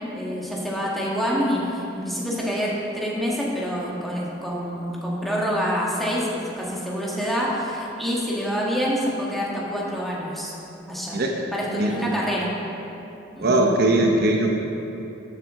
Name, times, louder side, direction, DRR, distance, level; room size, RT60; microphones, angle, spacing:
voice 1, 0.1-10.5 10.9-11.2 11.5-12.5 13.3-13.6, equal, ahead, -5 dB, 1.6 m, -26 dB
voice 2, 13.4-14.5, right 2 dB, 55° right, 1 dB, 0.8 m, -20 dB
13.5 x 7.6 x 3.7 m, 2.9 s
head